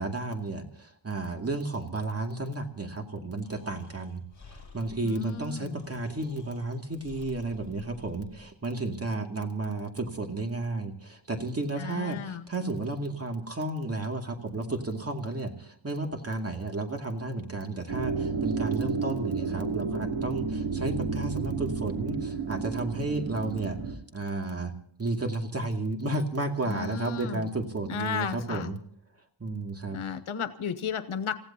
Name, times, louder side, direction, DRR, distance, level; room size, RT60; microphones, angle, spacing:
voice 1, 0.0-4.2 4.5-24.7 25.0-28.8 29.4-30.1, right 2 dB, 30° right, 3 dB, 2.4 m, -32 dB
Breathing, 3.4-8.5, left 4 dB, 35° left, 7.8 m, -52 dB
voice 2, 5.0-5.8 11.8-12.5 26.7-27.5 27.9-28.7 29.9-31.4, left 6 dB, 85° left, 9 dB, 1.2 m, -34 dB
sound 1, 17.9-24.0, right 5 dB, 75° right, 3.4 m, -31 dB
29.5 x 15.5 x 2.9 m, 0.65 s
wide cardioid pair, 135°, 48 cm